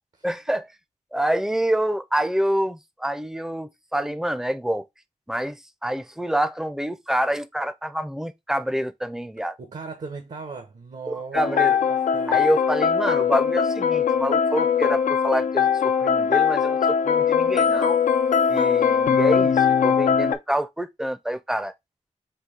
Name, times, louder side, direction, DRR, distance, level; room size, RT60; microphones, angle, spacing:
voice 1, 0.2-0.7 1.1-4.9 5.3-9.5 11.1-11.8 12.3-18.0 18.5-21.7, right 1 dB, 5° right, 0.5 m, -27 dB
voice 2, 9.6-12.4, right 4 dB, 65° right, 0.9 m, -37 dB
sound 1, 11.3-20.4, left 7 dB, 80° left, 0.5 m, -21 dB
4.5 x 2.6 x 3.7 m
cardioid pair, 55°, 13 cm